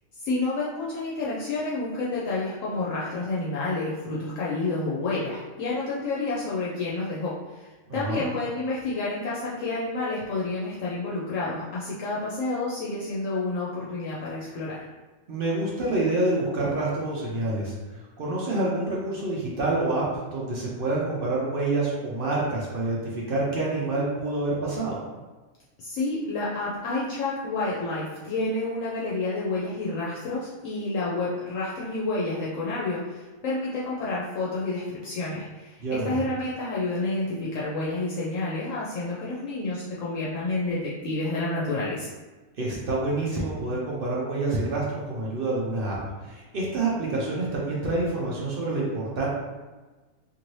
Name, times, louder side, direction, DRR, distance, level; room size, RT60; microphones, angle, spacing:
voice 1, 0.2-7.7 7.9-14.8 25.8-42.1, left 2 dB, 70° left, -6 dB, 0.9 m, -29 dB
voice 2, 7.9-8.2 15.3-25.0 35.8-36.2 42.6-49.3, right 2 dB, 55° right, -5 dB, 0.6 m, -27 dB
2.6 x 2.6 x 3.0 m, 1.2 s
omnidirectional pair, 1.5 m